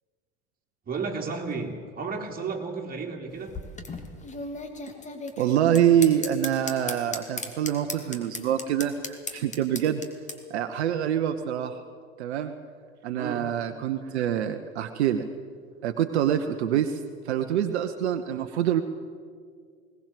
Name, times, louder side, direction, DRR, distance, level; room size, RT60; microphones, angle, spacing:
voice 1, 0.8-3.6 13.1-13.4, right 4 dB, 25° right, 1 dB, 3.4 m, -33 dB
sound 1, 3.3-10.4, left 3 dB, 20° left, 2.5 m, -36 dB
voice 2, 5.4-10.0 10.5-11.7 12.2-12.5 13.0-15.3 15.8-18.8, right 10 dB, 70° right, 7 dB, 1.1 m, -25 dB
20.5 x 18.5 x 7.7 m, 2.1 s
figure-of-eight pair, 75°, 34 cm